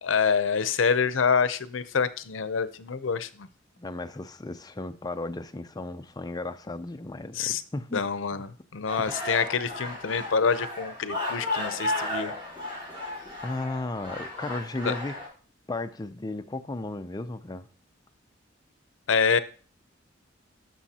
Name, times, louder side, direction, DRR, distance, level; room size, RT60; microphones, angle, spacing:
voice 1, 0.0-3.5 7.3-7.6 7.9-12.3 14.8-14.9 19.1-19.4, left 6 dB, 85° left, 0.6 m, -26 dB
voice 2, 3.8-8.0 8.9-9.0 13.4-15.2 15.7-17.7, left 2 dB, 20° left, 0.5 m, -35 dB
sound 1, 8.9-15.3, left 1 dB, 25° right, 3.7 m, -34 dB
13.5 x 6.3 x 2.8 m
head